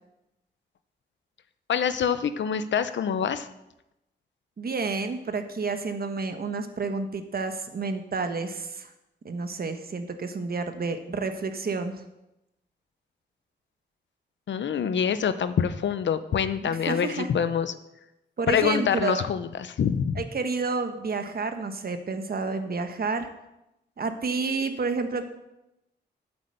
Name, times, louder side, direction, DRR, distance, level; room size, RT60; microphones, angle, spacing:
voice 1, 1.7-3.5 14.5-17.7 18.5-20.2, left 7 dB, 75° left, 12 dB, 0.8 m, -25 dB
voice 2, 4.6-8.9 9.2-11.9 16.6-17.3 18.4-19.2 20.2-23.3 24.0-25.3, right 4 dB, 55° right, 8 dB, 1.3 m, -30 dB
8.7 x 8.2 x 6.8 m, 0.91 s
cardioid pair, 65°, 19 cm